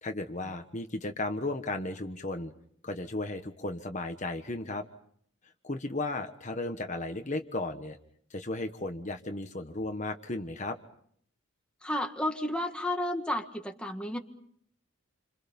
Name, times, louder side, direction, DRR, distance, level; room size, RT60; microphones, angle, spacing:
voice 1, 0.0-2.5 2.8-4.8 5.6-8.0 8.3-10.8, left 2 dB, 35° left, 6 dB, 1.4 m, -35 dB
voice 2, 11.8-14.2, left 1 dB, 5° left, 3 dB, 1.7 m, -32 dB
29.0 x 26.5 x 5.4 m, 0.64 s
head